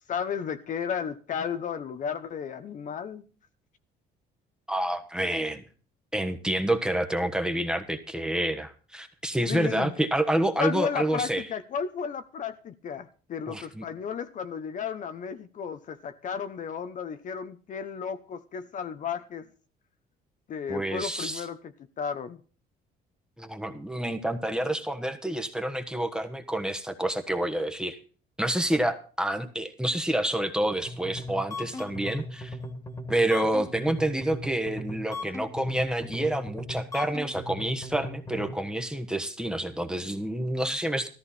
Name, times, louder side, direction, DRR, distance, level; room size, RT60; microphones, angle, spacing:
voice 1, 0.1-3.2 9.5-9.9 10.6-19.5 20.5-21.6 22.0-22.4, left 7 dB, 50° left, 0.9 m, -33 dB
voice 2, 4.7-5.6 6.1-11.4 13.5-13.8 20.7-21.4 23.4-28.0 28.4-32.6 33.1-41.1, right 1 dB, 5° right, 1.3 m, -28 dB
sound 1, 30.8-38.5, left 1 dB, 20° left, 2.0 m, -38 dB
14.0 x 13.0 x 4.2 m
cardioid pair, 110°, 17 cm